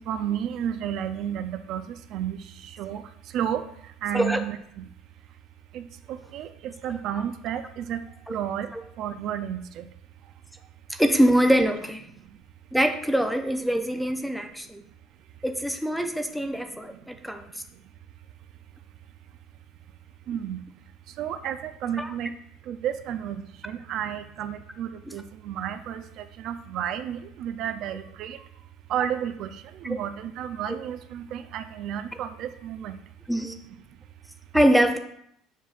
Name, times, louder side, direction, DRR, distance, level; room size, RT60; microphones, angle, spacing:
voice 1, 0.0-2.4 2.6-3.0 3.3-3.6 4.0-4.8 5.7-8.0 8.3-8.7 9.0-9.9 20.3-20.6 21.2-22.3 22.7-28.4 28.9-33.0, right 9 dB, 55° right, 9 dB, 0.4 m, -32 dB
voice 2, 10.9-12.0 12.7-14.8 15.4-17.6 22.0-22.1 25.1-25.2 29.8-30.0 33.3-33.6 34.5-35.0, equal, ahead, 5 dB, 0.5 m, -23 dB
7.2 x 5.5 x 2.4 m, 0.73 s
cardioid pair, 125°, 0 cm